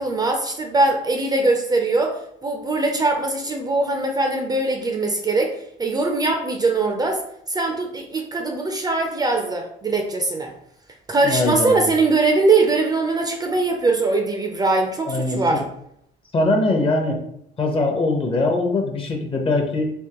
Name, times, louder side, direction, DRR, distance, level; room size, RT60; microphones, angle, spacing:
voice 1, 0.0-5.5 5.8-7.2 7.5-10.5 11.1-15.6, right 3 dB, 25° right, 3 dB, 0.5 m, -21 dB
voice 2, 11.2-11.9 15.1-15.6 16.3-17.2 17.6-19.9, left 2 dB, 30° left, 2 dB, 0.8 m, -22 dB
3.5 x 2.9 x 2.9 m, 0.74 s
cardioid pair, 110°, 17 cm